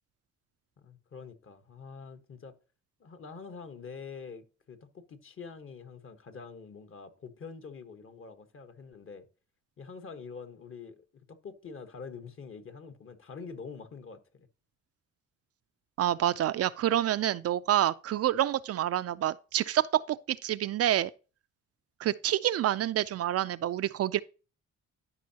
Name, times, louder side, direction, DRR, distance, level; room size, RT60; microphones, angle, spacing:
voice 1, 0.8-2.5 3.0-9.3 9.8-14.5, left 5 dB, 45° left, 1.3 m, -46 dB
voice 2, 16.0-21.1 22.0-24.2, right 12 dB, 55° right, 0.4 m, -28 dB
12.5 x 5.4 x 2.8 m
cardioid pair, 90°, 30 cm